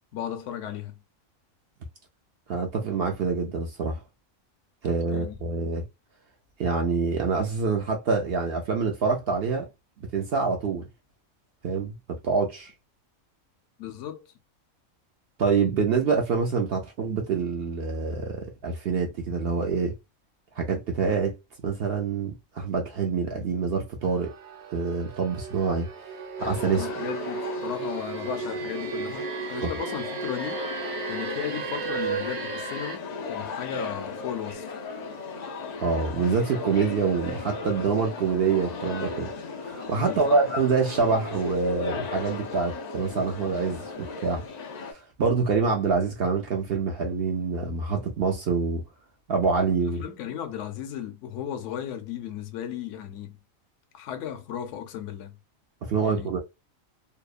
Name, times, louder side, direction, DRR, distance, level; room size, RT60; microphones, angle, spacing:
voice 1, 0.1-1.0 5.1-5.3 13.8-14.3 26.7-30.6 31.1-34.7 40.0-40.4 50.0-53.4 53.9-55.4 56.0-56.3, left 9 dB, 65° left, 0.9 m, -35 dB
voice 2, 2.5-4.0 4.8-5.8 6.6-9.7 10.0-10.9 11.6-12.0 12.2-12.7 15.4-20.0 20.6-21.4 21.6-24.3 24.7-25.9 26.4-26.9 29.6-29.7 35.8-39.3 39.6-44.5 44.9-48.8 49.3-50.0 55.8-56.4, right 5 dB, 65° right, 0.6 m, -26 dB
sound 1, 24.0-33.0, right 5 dB, 85° right, 1.1 m, -34 dB
sound 2, 26.4-44.9, left 4 dB, 85° left, 0.3 m, -36 dB
2.8 x 2.0 x 2.4 m
omnidirectional pair, 1.4 m